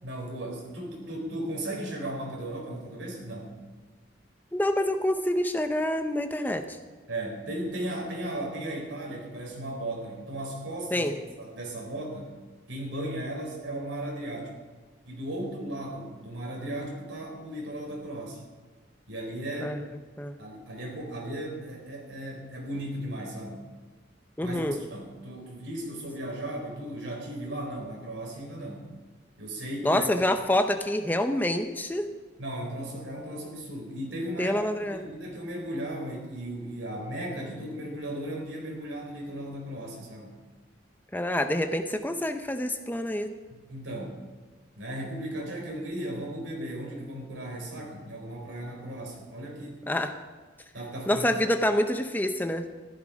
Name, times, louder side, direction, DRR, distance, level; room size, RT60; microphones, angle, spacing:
voice 1, 0.0-3.5 7.1-11.1 11.4-12.3 12.7-14.5 15.0-18.4 19.1-19.8 20.4-23.6 24.4-28.9 29.4-30.1 32.4-34.6 34.8-40.3 43.5-44.2 44.8-49.7 50.7-51.3, right 1 dB, 85° right, 0 dB, 4.3 m, -36 dB
voice 2, 4.5-6.8 10.9-11.1 19.6-19.8 20.2-20.4 24.4-24.8 29.8-32.1 34.4-35.1 41.1-43.3 49.9-50.1 51.1-52.7, left 1 dB, 10° left, 7 dB, 0.6 m, -27 dB
14.0 x 12.0 x 5.1 m, 1.4 s
head